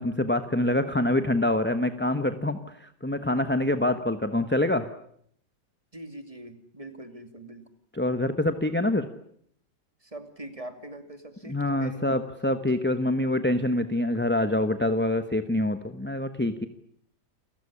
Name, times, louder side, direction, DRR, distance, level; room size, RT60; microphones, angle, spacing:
voice 1, 0.0-4.9 7.9-9.1 11.5-16.7, left 1 dB, 10° left, 9 dB, 0.9 m, -25 dB
voice 2, 5.9-7.7 10.0-12.1, right 1 dB, 20° right, 8 dB, 2.7 m, -43 dB
29.5 x 15.5 x 9.9 m, 0.68 s
omnidirectional pair, 1.9 m